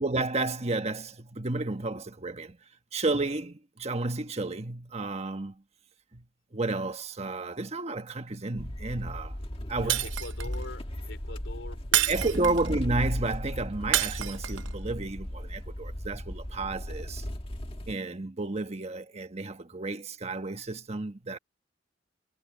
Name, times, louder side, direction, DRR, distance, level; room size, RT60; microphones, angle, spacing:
voice 1, 0.0-2.6 2.9-5.6 6.1-6.2 6.5-9.4 9.7-10.1 12.1-17.2 17.9-21.4, right 2 dB, 35° right, 1.3 m, -32 dB
sound 1, 8.6-17.9, equal, 30° left, 1.5 m, -36 dB
voice 2, 9.7-12.5, left 2 dB, 90° left, 3.5 m, -44 dB
Shatter, 9.9-10.6 11.9-12.7 13.9-14.7, right 12 dB, 80° right, 0.7 m, -28 dB
head